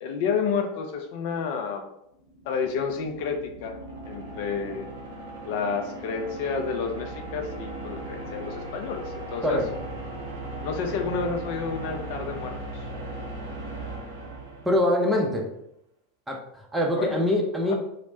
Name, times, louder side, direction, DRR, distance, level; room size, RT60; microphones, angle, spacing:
voice 1, 0.0-1.9 2.5-3.8 4.0-4.9 5.5-9.6 10.6-12.9 17.0-17.1 17.6-17.7, left 5 dB, 55° left, 5 dB, 0.3 m, -30 dB
sound 1, 2.1-15.3, right 2 dB, 65° right, 0.6 m, -38 dB
voice 2, 14.7-15.5 16.3-17.7, left 1 dB, 5° right, 0 dB, 0.6 m, -24 dB
3.0 x 2.0 x 2.7 m, 0.78 s
figure-of-eight pair, 85°, 0 cm